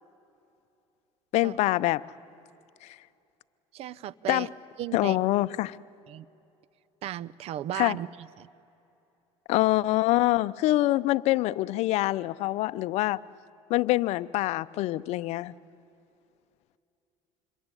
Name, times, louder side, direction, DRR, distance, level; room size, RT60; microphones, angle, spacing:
voice 1, 1.3-2.0 4.3-4.5 4.9-5.8 7.7-8.0 9.5-13.2 13.7-15.5, left 17 dB, 65° left, 0.7 m, -25 dB
voice 2, 3.7-4.5 4.8-5.2 6.1-6.3 7.0-8.5, right 12 dB, 60° right, 0.7 m, -36 dB
27.0 x 22.0 x 9.8 m
supercardioid pair, 110°, 12 cm